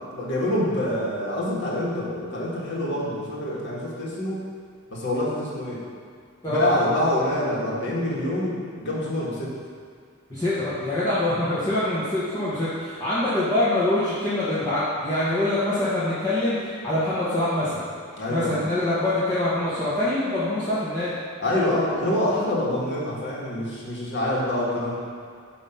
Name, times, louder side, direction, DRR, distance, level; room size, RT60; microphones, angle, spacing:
voice 1, 0.1-4.4 4.9-5.8 6.5-9.5 18.2-18.6 21.4-25.0, left 1 dB, 55° left, -5 dB, 1.6 m, -26 dB
voice 2, 6.4-6.7 10.3-17.8 18.3-21.1, left 1 dB, 15° left, -12 dB, 1.2 m, -24 dB
8.8 x 3.0 x 5.7 m, 2.1 s
head